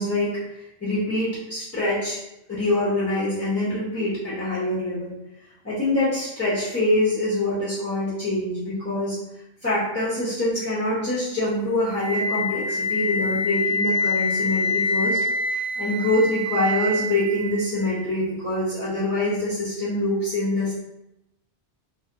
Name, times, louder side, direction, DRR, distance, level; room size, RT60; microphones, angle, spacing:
voice 1, 0.0-2.2 2.5-5.1 5.6-9.1 9.6-15.2 15.5-20.7, left 1 dB, 15° left, -9 dB, 0.6 m, -25 dB
Wind instrument woodwind instrument, 11.9-17.9, left 2 dB, 50° right, 1.0 m, -26 dB
4.1 x 2.5 x 2.6 m, 0.89 s
omnidirectional pair, 1.2 m